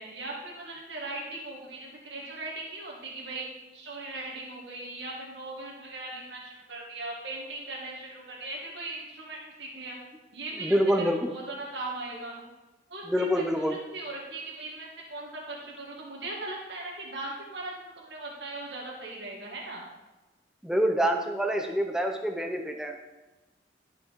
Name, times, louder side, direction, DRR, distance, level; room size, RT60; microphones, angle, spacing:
voice 1, 0.0-3.5 3.7-10.0 10.3-12.4 12.9-19.9, right 2 dB, 70° right, -3 dB, 2.0 m, -39 dB
voice 2, 10.6-11.3 13.1-13.8 20.6-22.9, equal, 5° right, 4 dB, 0.6 m, -26 dB
11.5 x 5.4 x 5.2 m, 1.1 s
head